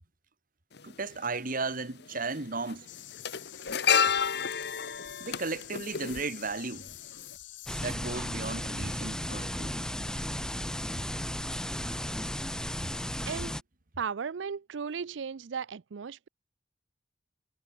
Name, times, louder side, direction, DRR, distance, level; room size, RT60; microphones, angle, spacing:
sound 1, 0.7-0.8 2.1-2.3 2.6-6.9 7.2-7.3, left 7 dB, 65° left, 1.3 m, -30 dB
voice 1, 0.8-2.9 5.2-6.8 7.8-10.2, right 3 dB, 50° right, 2.1 m, -35 dB
sound 2, 2.9-7.9, left 13 dB, 80° left, 1.6 m, -47 dB
sound 3, 7.7-13.6, equal, 5° left, 1.6 m, -35 dB
voice 2, 13.3-13.6 14.0-16.3, right 6 dB, 80° right, 0.5 m, -36 dB
head